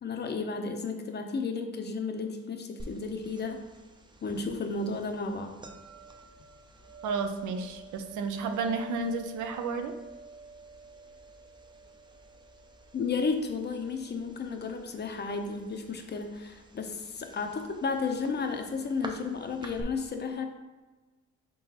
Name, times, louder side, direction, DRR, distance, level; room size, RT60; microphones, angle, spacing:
voice 1, 0.0-3.6 4.2-5.6 12.9-20.4, left 4 dB, 35° left, 5 dB, 0.6 m, -33 dB
sound 1, 2.8-19.8, right 2 dB, 15° right, 0.4 m, -49 dB
voice 2, 7.0-9.9, right 4 dB, 75° right, 7 dB, 0.5 m, -32 dB
3.9 x 3.8 x 2.8 m, 1.2 s
cardioid pair, 90°, 30 cm